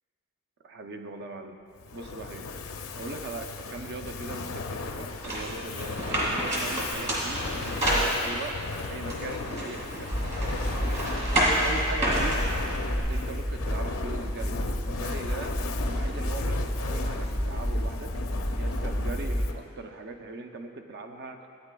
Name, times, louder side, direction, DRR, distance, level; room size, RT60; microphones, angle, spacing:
voice 1, 0.6-1.6 1.9-2.5 2.9-8.6 8.9-10.1 10.7-11.0 11.3-12.4 12.9-14.6 14.8-18.1 18.6-21.5, right 3 dB, 55° right, 5 dB, 0.5 m, -40 dB
Fire, 1.8-19.7, left 4 dB, 70° left, 0.5 m, -37 dB
sound 1, 5.2-8.6 9.1-13.0, equal, 35° right, 2.0 m, -29 dB
sound 2, 10.1-19.5, equal, 5° right, 0.5 m, -31 dB
13.0 x 8.9 x 2.2 m, 2.5 s
head